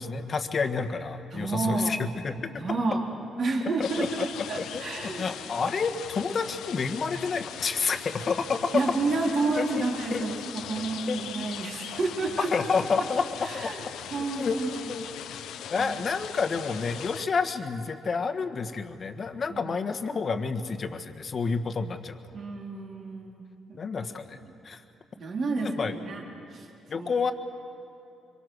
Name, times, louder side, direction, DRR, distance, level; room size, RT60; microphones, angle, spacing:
voice 1, 0.0-2.5 3.8-4.3 4.5-8.7 9.6-9.8 10.1-10.2 11.1-11.2 12.4-13.7 14.4-14.6 14.9-15.0 15.7-22.2 23.8-24.4 24.6-24.8 25.6-25.9 26.9-27.3, left 5 dB, 45° left, 7 dB, 1.4 m, -29 dB
voice 2, 1.3-2.0 2.6-3.0 3.4-5.3 8.7-12.5 13.0-13.8 14.1-14.9 15.7-15.9 19.5-19.8 20.1-20.2 22.3-23.4 23.7-23.8 25.2-26.2 26.5-26.7 27.0-27.1, right 3 dB, 55° right, -1 dB, 3.7 m, -30 dB
sound 1, 3.8-17.3, left 10 dB, 80° left, 0.7 m, -40 dB
25.0 x 23.5 x 6.4 m, 2.8 s
cardioid pair, 90°, 0 cm